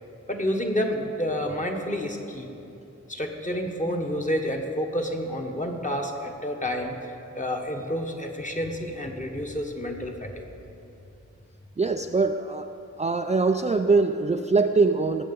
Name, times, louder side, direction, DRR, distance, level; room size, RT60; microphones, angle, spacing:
voice 1, 0.3-2.5 3.1-10.3, equal, 25° left, 2 dB, 1.4 m, -29 dB
voice 2, 11.8-12.7 13.0-15.2, right 4 dB, 25° right, 5 dB, 0.4 m, -22 dB
19.5 x 7.8 x 5.4 m, 2.8 s
wide cardioid pair, 110°, 30 cm